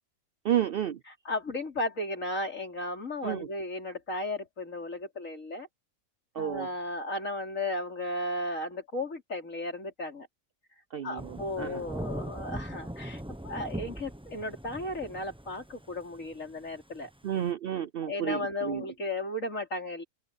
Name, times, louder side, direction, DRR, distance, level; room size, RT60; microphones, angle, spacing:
voice 1, 0.4-1.0 3.2-3.5 6.3-6.7 10.9-11.8 17.2-18.8, right 10 dB, 60° right, 0.6 m, -31 dB
voice 2, 1.2-5.7 6.4-10.3 11.0-17.1 18.0-20.0, left 1 dB, 70° left, 4.6 m, -35 dB
Thunder / Rain, 11.2-17.5, right 1 dB, 5° right, 0.9 m, -40 dB
open air
omnidirectional pair, 1.4 m